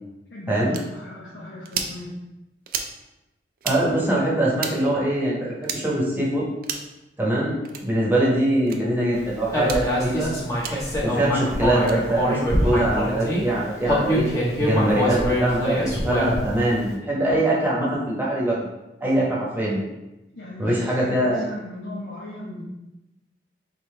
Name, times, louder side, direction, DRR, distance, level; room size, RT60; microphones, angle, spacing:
voice 1, 0.3-2.1 20.3-22.6, left 1 dB, 75° left, -7 dB, 1.0 m, -37 dB
sound 1, 0.7-0.8 1.6-1.9 2.7-2.9 3.6-3.8 4.6-4.7 5.6-5.8 6.6-6.9 7.6-7.8 8.7-8.8 9.6-9.8 10.6-10.7 11.7-12.0, right 7 dB, 55° right, 0.5 m, -30 dB
voice 2, 3.6-6.5 7.2-7.6 7.8-10.3 11.0-14.3 14.6-18.7 19.0-19.8 20.6-21.5, right 1 dB, 10° right, -5 dB, 1.1 m, -23 dB
Human voice, 9.5-13.4 13.8-16.6, equal, 20° left, 1.1 m, -24 dB
4.2 x 3.8 x 3.2 m, 0.98 s
head